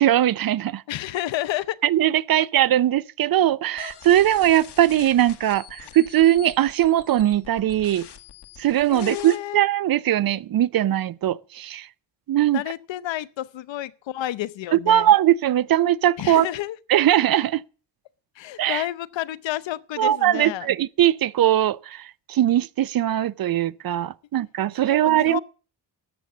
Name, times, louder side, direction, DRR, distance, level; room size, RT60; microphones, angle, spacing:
voice 1, 0.0-0.8 1.8-8.1 8.6-11.9 12.3-12.6 14.7-16.5 16.9-17.6 18.6-18.8 20.0-25.4, right 12 dB, 55° right, 0.5 m, -20 dB
voice 2, 0.9-1.8 2.4-2.5 8.9-9.6 12.5-15.1 16.2-16.8 18.4-20.7 24.9-25.4, left 14 dB, 90° left, 0.8 m, -30 dB
sound 1, 3.8-9.4, left 8 dB, 65° left, 1.7 m, -44 dB
13.0 x 7.9 x 7.1 m
wide cardioid pair, 165°, 43 cm